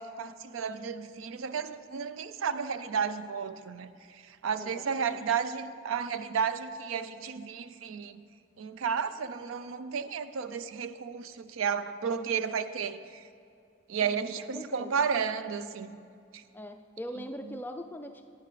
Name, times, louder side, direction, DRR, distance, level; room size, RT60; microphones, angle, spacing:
voice 1, 0.0-3.9 4.4-8.3 8.6-13.2 13.9-16.0 16.3-16.4, right 6 dB, 80° right, 12 dB, 0.4 m, -32 dB
voice 2, 4.5-5.2 14.0-15.1 16.5-18.2, equal, 10° left, 6 dB, 0.3 m, -42 dB
11.5 x 9.2 x 3.2 m, 2.4 s
head